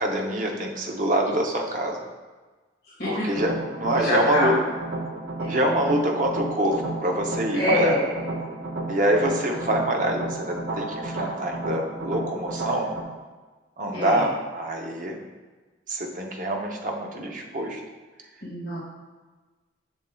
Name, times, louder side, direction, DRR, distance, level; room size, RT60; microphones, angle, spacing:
voice 1, 0.0-2.0 3.0-3.5 3.8-4.5 5.5-8.0 8.9-12.9 13.8-15.2 15.9-17.8, right 1 dB, 40° right, 1 dB, 0.7 m, -25 dB
sound 1, 3.3-13.0, right 2 dB, 75° right, 0.9 m, -32 dB
voice 2, 4.0-4.6 5.4-5.5 7.5-8.1 13.9-14.3 18.4-18.8, left 1 dB, 50° left, -8 dB, 1.8 m, -25 dB
7.0 x 6.5 x 2.3 m, 1.3 s
head